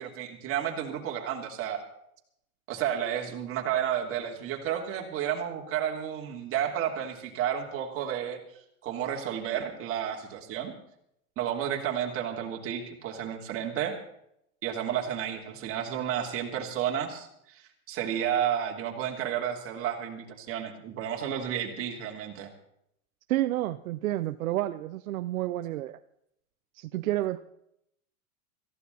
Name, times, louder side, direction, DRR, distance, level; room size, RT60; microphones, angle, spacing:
voice 1, 0.0-1.8 2.7-8.4 8.8-10.7 11.4-13.9 14.6-22.5, right 9 dB, 30° right, 1 dB, 3.2 m, -31 dB
voice 2, 23.3-26.0 26.7-27.4, right 15 dB, 75° right, 12 dB, 0.8 m, -30 dB
18.0 x 15.0 x 4.2 m, 0.75 s
supercardioid pair, 140°, 42 cm